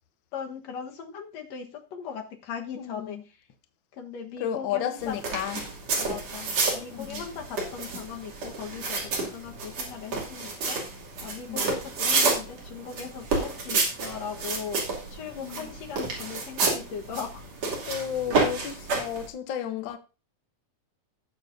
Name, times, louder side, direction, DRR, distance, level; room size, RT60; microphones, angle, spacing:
voice 1, 0.3-3.4 3.9-5.4 6.0-10.8 11.2-14.8 15.1-17.4, left 7 dB, 60° left, 2.4 m, -39 dB
voice 2, 2.8-3.2 4.4-5.7 6.9-7.2 11.5-11.7 15.3-15.7 17.9-20.0, left 9 dB, 90° left, 1.0 m, -32 dB
sound 1, 5.0-19.3, right 3 dB, 55° right, 3.8 m, -30 dB
18.0 x 7.2 x 2.7 m
omnidirectional pair, 3.6 m